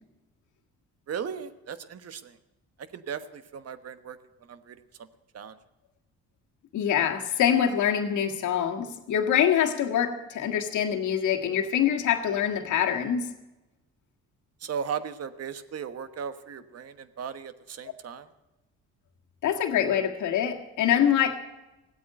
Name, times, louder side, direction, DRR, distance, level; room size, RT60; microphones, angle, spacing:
voice 1, 1.1-2.4 2.8-4.2 4.5-5.1 5.3-5.6 14.6-18.3, right 7 dB, 55° right, 12 dB, 1.2 m, -37 dB
voice 2, 6.7-13.3 19.4-21.4, left 9 dB, 75° left, 3 dB, 1.7 m, -25 dB
17.0 x 8.5 x 9.9 m, 1.0 s
cardioid pair, 90°, 30 cm